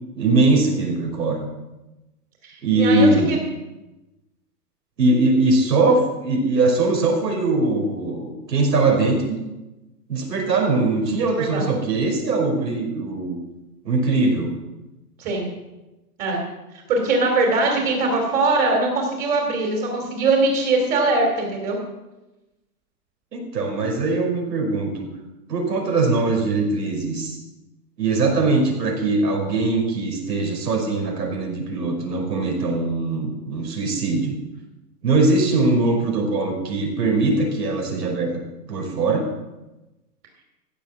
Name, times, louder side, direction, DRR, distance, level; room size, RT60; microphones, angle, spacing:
voice 1, 0.1-1.5 2.6-3.3 5.0-9.4 10.1-13.4 13.8-14.5 23.3-25.1 25.5-27.4 28.0-34.4 35.0-38.3 38.7-39.3, right 3 dB, 85° right, 1 dB, 5.6 m, -21 dB
voice 2, 2.4-3.4 11.2-11.6 15.2-15.5 16.2-16.4 16.9-21.8, right 3 dB, 15° right, 1 dB, 2.9 m, -21 dB
15.5 x 7.2 x 7.5 m, 1.0 s
hypercardioid pair, 165°, 48 cm